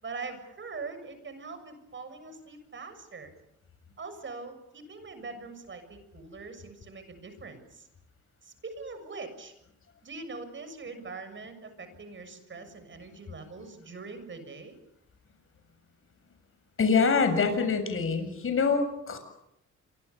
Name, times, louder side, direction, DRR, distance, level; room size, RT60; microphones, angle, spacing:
voice 1, 0.0-3.3 4.0-7.9 8.4-9.5 10.0-14.8, right 4 dB, 40° right, 9 dB, 7.0 m, -42 dB
voice 2, 16.8-19.2, left 5 dB, 45° left, 7 dB, 7.2 m, -25 dB
28.0 x 24.5 x 7.1 m, 0.79 s
cardioid pair, 90°, 30 cm